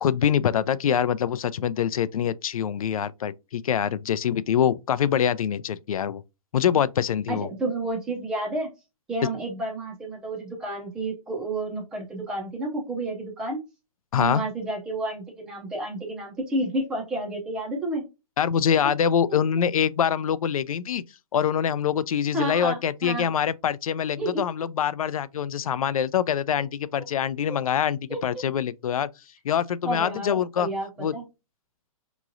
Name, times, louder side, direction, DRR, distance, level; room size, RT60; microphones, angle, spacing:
voice 1, 0.0-6.2 6.5-7.5 14.1-14.4 18.4-21.0 21.3-29.1 29.4-30.7 31.0-31.2, left 8 dB, 70° left, 0.4 m, -24 dB
voice 2, 7.3-8.7 9.1-13.6 14.2-18.0 22.3-23.3 24.2-24.5 28.1-28.4 29.8-31.2, right 2 dB, 5° right, 0.4 m, -30 dB
4.7 x 3.0 x 2.5 m
hypercardioid pair, 175°, 18 cm